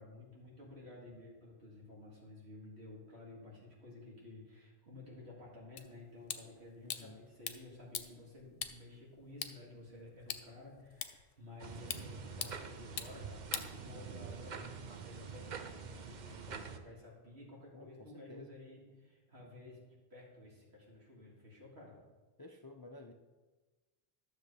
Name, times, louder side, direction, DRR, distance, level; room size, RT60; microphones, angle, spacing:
voice 1, 0.0-22.0, left 2 dB, 90° right, -5 dB, 2.7 m, -53 dB
sound 1, 5.8-14.4, left 8 dB, 65° left, 0.8 m, -46 dB
voice 2, 6.8-7.2 17.7-18.6 22.4-23.1, left 2 dB, 40° left, 4 dB, 0.3 m, -53 dB
sound 2, 11.6-16.8, right 6 dB, 50° right, 0.7 m, -46 dB
12.0 x 6.7 x 3.4 m, 1.3 s
omnidirectional pair, 1.1 m